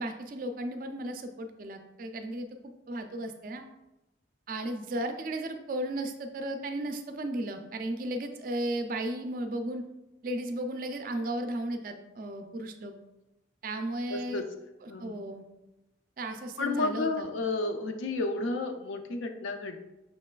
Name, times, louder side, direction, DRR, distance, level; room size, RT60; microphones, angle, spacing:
voice 1, 0.0-2.5 2.9-3.6 4.5-9.8 10.2-12.9 13.6-14.4 14.8-15.4 16.2-17.3, right 1 dB, 45° right, 6 dB, 0.3 m, -35 dB
voice 2, 14.1-14.4 14.9-15.2 16.6-19.8, left 2 dB, 90° left, 6 dB, 0.5 m, -31 dB
5.6 x 3.1 x 2.2 m, 0.97 s
head